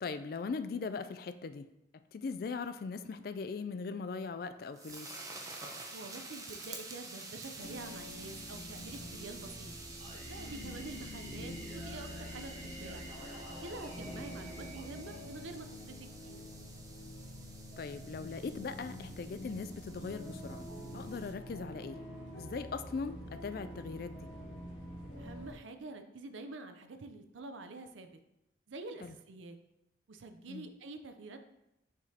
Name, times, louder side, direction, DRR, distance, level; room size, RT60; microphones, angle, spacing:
voice 1, 0.0-1.7 2.1-5.2 10.6-10.8 14.1-14.2 17.8-20.7 20.9-22.0 22.3-24.3 29.0-29.2 30.5-30.6, left 4 dB, 50° left, 11 dB, 0.3 m, -40 dB
sound 1, 4.3-21.3, right 3 dB, 20° right, 0.6 m, -50 dB
voice 2, 5.9-9.7 10.3-13.0 13.6-16.4 25.2-28.1 28.7-29.6 30.1-31.4, right 2 dB, 90° right, 8 dB, 0.6 m, -47 dB
sound 2, 7.6-25.5, left 1 dB, 85° left, 1.3 m, -47 dB
Singing, 10.0-15.9, right 1 dB, 35° right, 1.0 m, -50 dB
6.8 x 5.0 x 2.8 m, 0.88 s
head